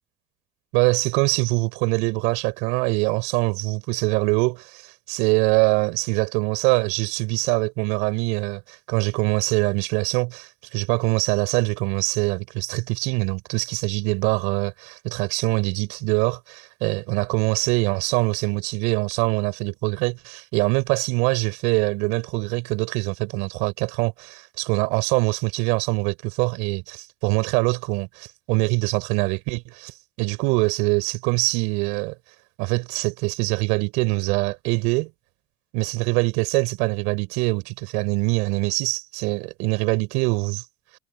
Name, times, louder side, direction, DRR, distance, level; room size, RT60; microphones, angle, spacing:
voice 1, 0.7-32.2 32.6-35.1 35.7-40.6, right 29 dB, 75° right, 5.7 m, -24 dB
hypercardioid pair, 70°, 12 cm